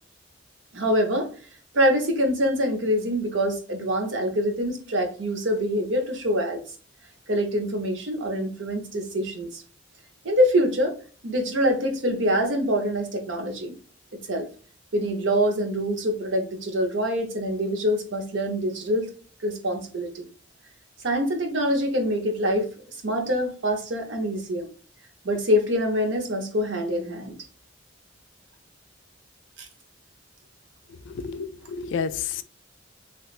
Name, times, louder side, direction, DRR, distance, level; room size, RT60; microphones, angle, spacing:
voice 1, 0.7-1.3 1.7-6.6 7.3-9.6 10.2-10.9 11.2-13.8 14.1-14.5 14.9-19.1 19.4-20.2 21.0-22.7 23.0-24.7 25.2-27.3 29.6-29.7, equal, 80° right, 0.8 m, -25 dB
voice 2, 31.2-32.4, left 6 dB, 70° left, 0.3 m, -30 dB
3.1 x 3.1 x 2.4 m
head